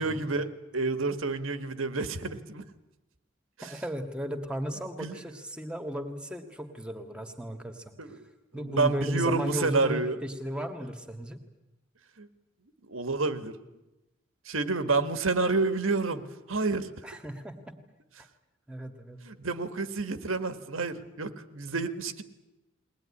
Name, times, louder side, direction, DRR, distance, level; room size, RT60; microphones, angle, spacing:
voice 1, 0.0-2.6 5.0-5.2 8.0-8.2 8.5-10.2 12.2-12.3 12.8-13.5 14.4-16.9 19.2-22.2, right 3 dB, 90° right, 10 dB, 1.6 m, -29 dB
voice 2, 3.6-7.9 8.5-11.4 17.0-17.6 18.7-19.2, equal, 5° right, 6 dB, 1.9 m, -35 dB
21.5 x 19.5 x 9.9 m, 0.99 s
head